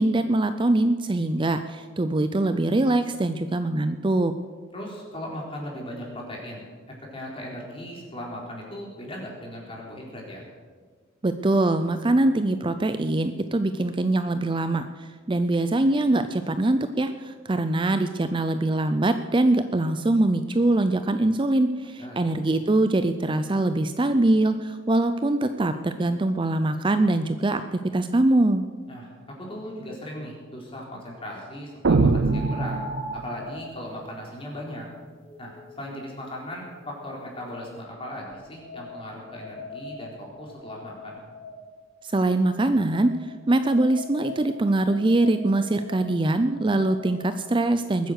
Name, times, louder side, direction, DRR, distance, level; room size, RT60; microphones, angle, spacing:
voice 1, 0.0-4.3 11.2-28.7 42.0-43.1 43.5-48.1, right 2 dB, 25° right, 10 dB, 0.5 m, -23 dB
voice 2, 4.7-6.6 7.1-10.4 22.0-22.2 28.9-29.1 29.4-32.8 33.1-34.9 35.4-41.2, left 1 dB, 30° left, -2 dB, 4.1 m, -38 dB
sound 1, 29.7-29.8 32.2-37.4 38.2-41.9 42.9-47.5, left 1 dB, 70° left, 4.4 m, -42 dB
sound 2, 31.8-33.5, right 3 dB, 70° right, 0.6 m, -22 dB
21.0 x 9.4 x 6.6 m, 1.5 s
head